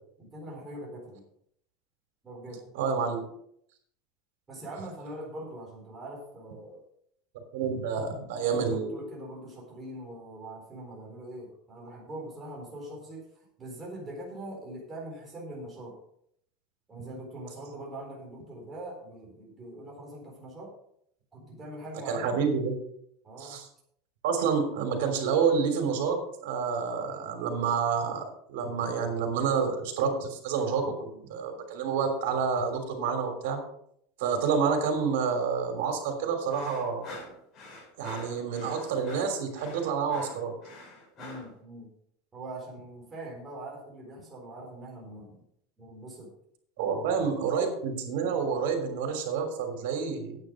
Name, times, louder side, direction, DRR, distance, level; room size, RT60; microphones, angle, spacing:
voice 1, 0.2-1.2 2.2-2.6 4.5-6.8 8.4-16.0 16.9-20.7 21.3-22.4 23.2-23.6 41.2-41.9 42.3-45.4 45.8-46.3 46.8-47.3, right 1 dB, 15° right, -3 dB, 4.2 m, -42 dB
voice 2, 2.7-3.2 7.5-9.0 22.1-22.7 23.4-23.6 24.2-33.6 34.2-37.1 38.0-40.5 46.8-50.4, right 6 dB, 80° right, 5 dB, 3.2 m, -28 dB
sound 1, 36.5-41.5, left 1 dB, 35° left, 5.6 m, -45 dB
9.7 x 9.4 x 5.1 m, 0.70 s
supercardioid pair, 145°, 0 cm